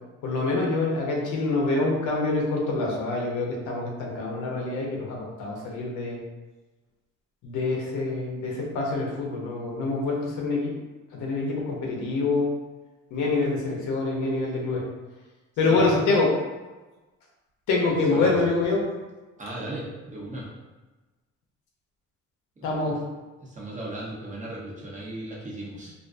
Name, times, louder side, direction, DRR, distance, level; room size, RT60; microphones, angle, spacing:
voice 1, 0.2-6.2 7.4-10.7 11.1-12.5 13.1-14.8 15.6-16.3 17.7-18.8 22.6-23.0, left 3 dB, 80° left, -2 dB, 0.7 m, -26 dB
voice 2, 17.9-18.5 19.4-20.5 22.6-23.0 23.4-25.9, right 1 dB, 25° right, -5 dB, 0.8 m, -36 dB
2.4 x 2.2 x 2.5 m, 1.2 s
cardioid pair, 90°, 30 cm